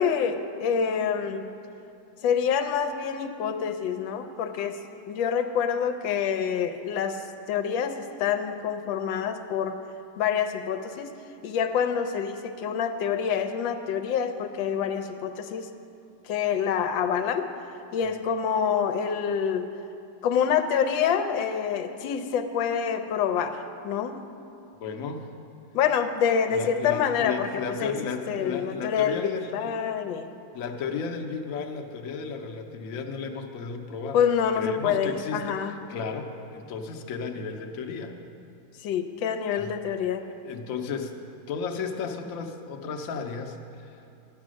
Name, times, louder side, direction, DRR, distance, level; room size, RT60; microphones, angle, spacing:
voice 1, 0.0-1.5 2.2-4.8 5.1-9.8 10.2-11.1 11.4-15.7 16.2-17.5 17.9-19.7 20.2-24.2 25.7-28.0 28.3-30.3 34.1-35.8 38.8-40.3, left 7 dB, 85° left, 8 dB, 1.4 m, -27 dB
voice 2, 24.7-25.2 26.5-29.8 30.5-34.2 34.5-38.1 39.6-39.7 40.2-41.1 41.5-44.0, left 5 dB, 55° left, 3 dB, 1.0 m, -34 dB
11.5 x 8.3 x 6.2 m, 2.7 s
omnidirectional pair, 2.1 m